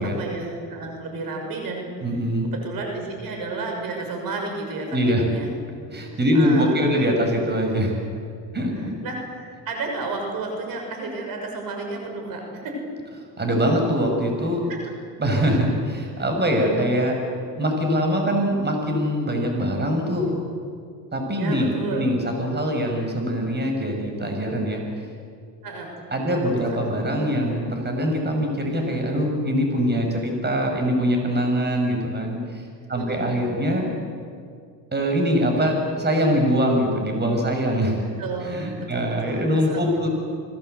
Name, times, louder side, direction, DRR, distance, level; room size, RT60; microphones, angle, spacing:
voice 1, 0.0-1.9 2.4-5.5 6.3-7.0 9.0-12.9 14.7-14.8 21.3-22.1 25.6-25.9 26.6-26.8 32.9-33.5 38.2-38.5 38.9-40.1, right 3 dB, 65° right, 2 dB, 6.5 m, -32 dB
voice 2, 2.0-2.5 4.9-5.2 5.9-7.9 8.5-8.9 13.4-14.6 15.2-17.1 17.5-20.3 21.1-24.8 26.1-32.6 32.9-33.9 34.9-38.0 38.4-40.1, equal, 25° right, 2 dB, 6.5 m, -23 dB
26.5 x 20.0 x 8.2 m, 2.2 s
supercardioid pair, 85°, 37 cm